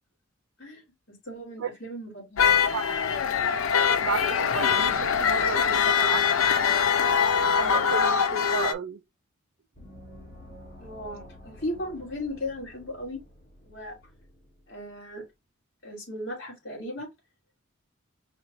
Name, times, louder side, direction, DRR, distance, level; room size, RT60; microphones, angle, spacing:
voice 1, 0.6-2.8 10.8-13.2 13.6-14.0 14.7-15.2 15.8-17.1, left 1 dB, 60° left, 3.2 m, -37 dB
sound 1, 2.4-8.7, left 7 dB, 80° left, 0.5 m, -23 dB
voice 2, 4.0-6.4 7.4-9.0, right 6 dB, 70° right, 0.4 m, -33 dB
Gong, 9.7-15.0, equal, 45° left, 1.6 m, -49 dB
4.8 x 3.2 x 2.9 m
head